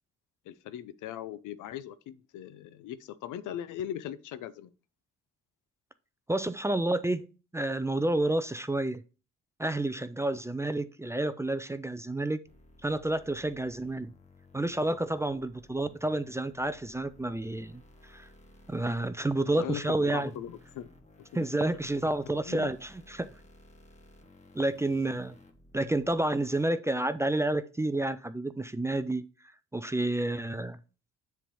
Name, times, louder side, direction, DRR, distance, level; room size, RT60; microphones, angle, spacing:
voice 1, 0.5-4.7 19.5-20.9 22.5-22.7, left 11 dB, 85° left, 0.6 m, -39 dB
voice 2, 6.3-9.0 9.6-12.4 12.8-14.1 14.5-17.8 18.1-18.3 18.7-20.3 21.3-23.3 24.6-25.3 25.7-29.2 29.7-30.8, right 2 dB, 10° right, 0.4 m, -30 dB
sound 1, 12.4-26.6, left 2 dB, 25° left, 1.2 m, -57 dB
7.4 x 3.5 x 5.4 m
cardioid pair, 90°, 30 cm